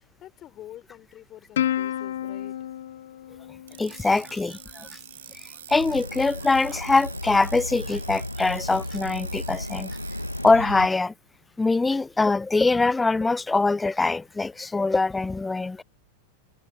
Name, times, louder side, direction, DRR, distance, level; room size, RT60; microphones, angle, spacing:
voice 1, 0.0-2.6, left 12 dB, 30° left, 5.0 m, -46 dB
Plucked string instrument, 1.6-4.3, left 11 dB, 60° left, 1.3 m, -30 dB
sound 1, 3.7-10.5, right 10 dB, 60° right, 7.0 m, -45 dB
voice 2, 3.8-4.9 5.4-10.0 10.4-11.1 11.6-15.8, left 3 dB, 10° left, 0.3 m, -23 dB
sound 2, 5.7-10.9, left 1 dB, 85° left, 1.4 m, -34 dB
figure-of-eight pair, 90°, 0 cm